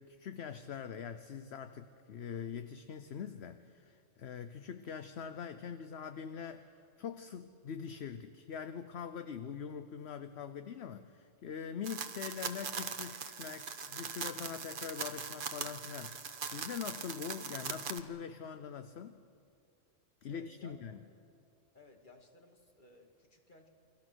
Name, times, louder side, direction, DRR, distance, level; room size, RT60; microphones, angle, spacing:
voice 1, 0.0-6.7 7.0-19.2 20.2-21.0, left 7 dB, 60° left, 10 dB, 1.0 m, -43 dB
sound 1, 11.8-18.0, right 6 dB, 45° right, 1.0 m, -41 dB
voice 2, 20.3-21.2 21.7-23.7, left 1 dB, 40° left, 3 dB, 2.3 m, -59 dB
29.0 x 22.5 x 6.2 m, 2.5 s
omnidirectional pair, 1.3 m